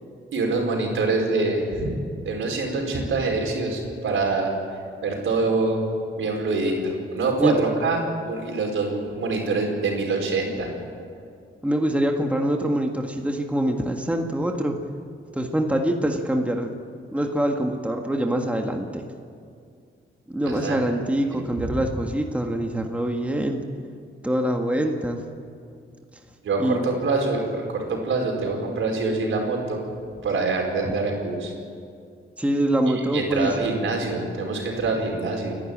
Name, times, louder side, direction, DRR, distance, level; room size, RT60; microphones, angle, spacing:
voice 1, 0.3-1.9 2.2-4.5 5.0-5.8 6.2-10.7 20.4-20.8 21.3-21.8 26.4-29.8 30.2-31.5 32.9-35.6, right 3 dB, 75° right, 1 dB, 4.9 m, -25 dB
voice 2, 11.6-14.8 15.3-16.7 17.1-19.1 20.3-23.6 24.2-25.2 26.6-26.9 30.8-30.9 32.4-33.6, right 1 dB, 5° right, 3 dB, 1.8 m, -24 dB
29.5 x 11.5 x 8.9 m, 2.3 s
cardioid pair, 85°, 21 cm